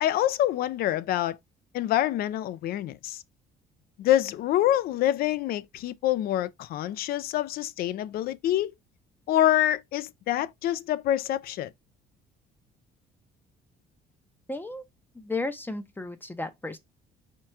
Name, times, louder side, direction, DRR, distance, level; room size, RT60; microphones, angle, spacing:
voice 1, 0.0-1.4 1.7-3.2 4.0-8.7 9.3-11.7, left 12 dB, 60° left, 0.4 m, -26 dB
voice 2, 14.5-14.8 15.2-16.8, left 2 dB, 10° left, 0.6 m, -33 dB
4.4 x 2.4 x 4.2 m
cardioid pair, 110°, 17 cm